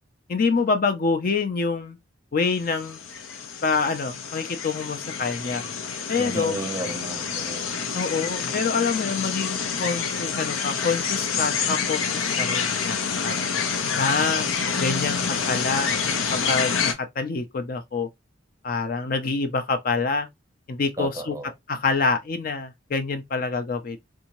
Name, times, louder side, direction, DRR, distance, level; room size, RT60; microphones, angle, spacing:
voice 1, 0.3-2.0 2.3-3.0 3.6-5.6 6.1-6.6 7.9-13.5 14.0-14.5 14.8-15.2 15.5-15.9 16.3-18.1 18.6-20.3 20.7-21.4 21.7-24.0, left 4 dB, 45° left, 0.5 m, -26 dB
sound 1, 2.5-16.9, left 6 dB, 90° left, 0.7 m, -28 dB
voice 2, 6.2-7.7 21.0-21.5, right 2 dB, 15° right, 0.6 m, -33 dB
3.5 x 2.6 x 2.9 m
head